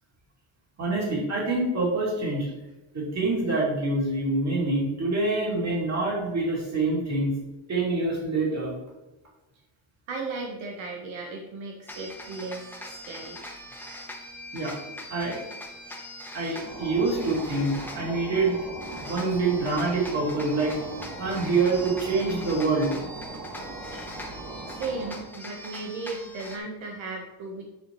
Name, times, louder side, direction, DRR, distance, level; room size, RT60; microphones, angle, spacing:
voice 1, 0.8-2.5 2.9-7.3 7.7-8.7 14.5-14.7 15.1-15.4 16.3-18.6 18.9-20.8 21.2-22.9 23.9-24.0, right 3 dB, 35° right, -4 dB, 3.1 m, -26 dB
voice 2, 10.1-13.4 24.6-27.6, right 3 dB, 80° right, 0 dB, 1.6 m, -36 dB
sound 1, 11.9-26.6, left 1 dB, 5° left, 1.1 m, -42 dB
sound 2, 16.5-25.3, right 2 dB, 50° right, 2.0 m, -40 dB
10.0 x 6.8 x 3.3 m, 1.0 s
cardioid pair, 175°, 46 cm